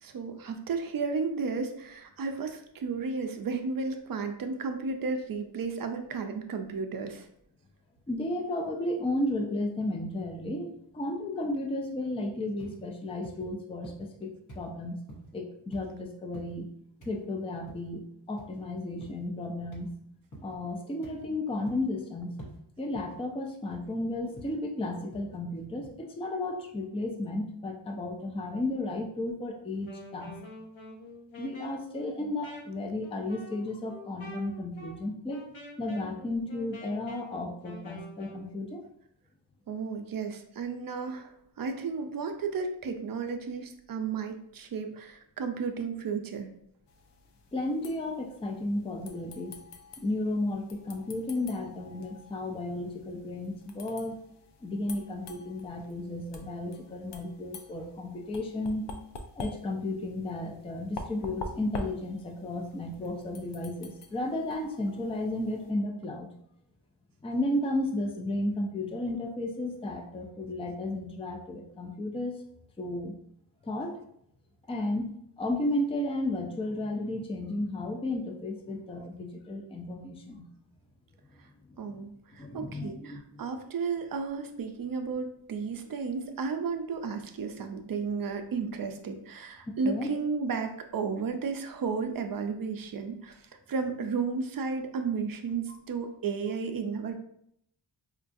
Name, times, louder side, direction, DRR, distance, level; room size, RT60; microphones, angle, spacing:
voice 1, 0.0-7.3 39.7-46.5 81.8-97.2, right 5 dB, 50° right, 6 dB, 0.5 m, -33 dB
voice 2, 8.1-14.3 14.6-15.0 15.3-16.7 17.0-19.9 20.4-22.3 22.8-30.4 31.4-35.4 35.8-38.8 47.5-49.6 50.0-54.2 54.6-58.9 59.4-66.3 67.2-72.4 72.8-73.1 73.6-74.0 74.7-80.5 81.7-82.1 82.4-83.4 89.7-90.1, left 1 dB, 15° left, 3 dB, 0.4 m, -33 dB
sound 1, 12.6-12.8 13.2-13.5 13.8-14.2 14.5-14.7 15.1-15.3 15.7-15.9 16.3-16.6 17.0-17.2 17.7-17.9 18.4-18.6 19.0-19.3 19.7-19.9 20.3-20.5 21.0-21.3 21.7-22.0 22.4-22.6 22.9-23.2 23.7-23.9 24.4-24.6 25.1-25.4 25.8-25.9, right 1 dB, 40° left, 0.9 m, -47 dB
Wind instrument woodwind instrument, 29.7-38.5, left 1 dB, 80° left, 0.9 m, -47 dB
sound 2, 46.9-65.7, left 3 dB, 65° left, 0.5 m, -47 dB
4.4 x 2.3 x 2.5 m, 0.70 s
wide cardioid pair, 95°, 46 cm